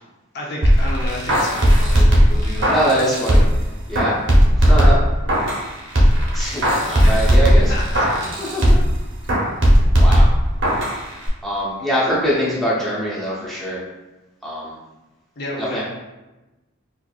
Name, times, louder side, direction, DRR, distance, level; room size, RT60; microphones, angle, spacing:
voice 1, 0.3-2.8 7.0-7.1 7.7-8.1 15.4-15.8, left 1 dB, 50° left, -3 dB, 0.7 m, -30 dB
sound 1, 0.6-3.6 3.9-5.7 6.0-8.9 9.3-11.0 11.3-11.4, equal, 60° right, 0.8 m, -15 dB
voice 2, 2.7-3.4 3.9-4.2 4.6-5.0 6.3-7.6 8.4-8.8 10.0-10.3 11.4-13.8 14.4-14.7 15.7-15.8, equal, ahead, -8 dB, 0.6 m, -23 dB
4.3 x 2.5 x 2.3 m, 1.1 s
head